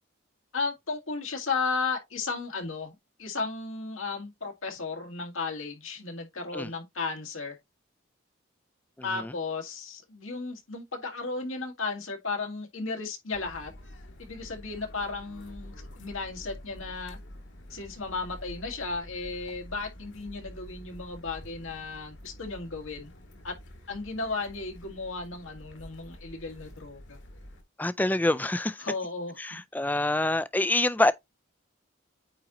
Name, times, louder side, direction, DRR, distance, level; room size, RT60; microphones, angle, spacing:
voice 1, 0.5-2.9 3.2-7.6 9.0-13.7 14.2-17.2 17.7-23.1 23.4-23.6 23.9-27.2 28.8-29.6, left 4 dB, 85° left, 2.0 m, -34 dB
voice 2, 9.0-9.3 27.8-28.8 29.4-31.1, left 2 dB, 10° left, 0.3 m, -26 dB
sound 1, 13.3-27.6, equal, 65° left, 1.9 m, -47 dB
8.8 x 3.9 x 2.9 m
head